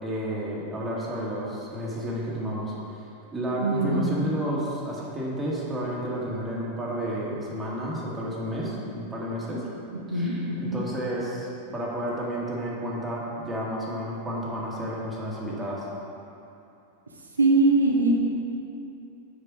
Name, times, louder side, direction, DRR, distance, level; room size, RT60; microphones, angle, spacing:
voice 1, 0.0-3.0 3.3-9.7 10.1-15.8, right 1 dB, 15° right, -5 dB, 1.7 m, -31 dB
voice 2, 3.6-4.2 10.1-10.8 17.4-18.1, right 2 dB, 75° right, -1 dB, 0.7 m, -22 dB
6.8 x 5.7 x 4.8 m, 2.7 s
figure-of-eight pair, 90°, 0 cm